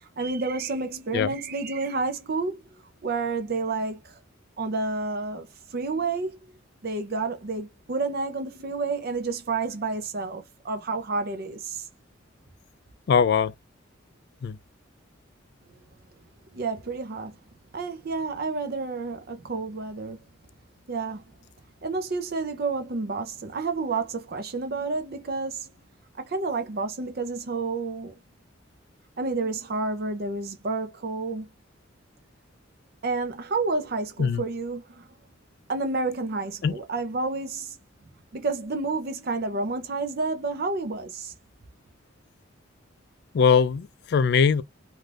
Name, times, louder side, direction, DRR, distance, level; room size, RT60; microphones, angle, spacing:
voice 1, 0.0-2.6 3.0-4.1 4.6-6.4 6.8-11.9 16.5-17.4 17.7-20.2 20.9-21.2 21.8-25.7 26.2-28.1 29.2-31.5 33.0-35.1 35.7-37.8 38.3-41.3, right 3 dB, 50° right, 0.6 m, -30 dB
voice 2, 13.1-13.5 14.4-14.6 34.2-34.4 36.6-36.8 43.3-44.6, left 6 dB, 55° left, 0.3 m, -21 dB
2.6 x 2.4 x 3.2 m
head